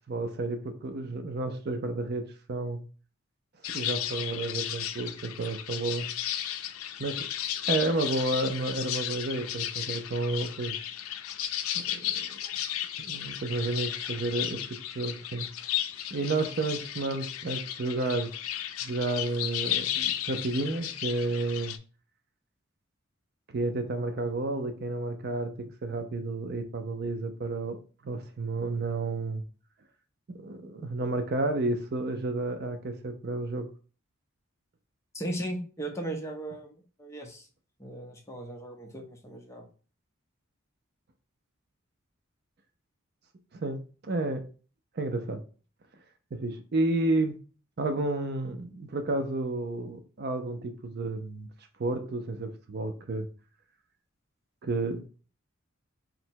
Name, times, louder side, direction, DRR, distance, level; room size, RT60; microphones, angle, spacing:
voice 1, 0.1-2.8 3.7-6.1 7.0-7.3 7.7-10.7 11.7-12.4 13.0-14.6 14.9-15.5 16.1-18.3 18.8-21.7 23.5-27.8 28.0-29.4 30.3-33.7 43.5-44.4 45.0-45.4 46.3-47.4 47.8-51.5 51.8-53.3 54.6-55.0, right 2 dB, 50° right, 7 dB, 0.5 m, -31 dB
sound 1, 3.6-21.8, left 11 dB, 85° left, 0.4 m, -34 dB
voice 2, 35.1-36.7 37.0-37.5 37.8-39.7, right 1 dB, 15° left, 2 dB, 0.6 m, -37 dB
3.8 x 2.1 x 4.4 m, 0.37 s
head